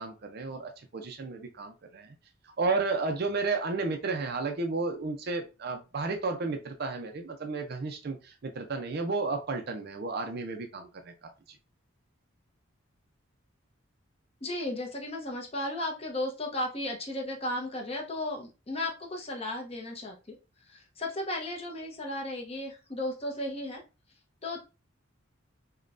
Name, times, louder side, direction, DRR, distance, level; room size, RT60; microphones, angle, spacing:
voice 1, 0.0-2.1 2.6-11.1, right 3 dB, 50° right, 0.5 m, -32 dB
voice 2, 14.4-20.3 20.7-23.8 24.4-24.6, left 1 dB, 30° left, 0.8 m, -35 dB
5.1 x 2.2 x 2.5 m
head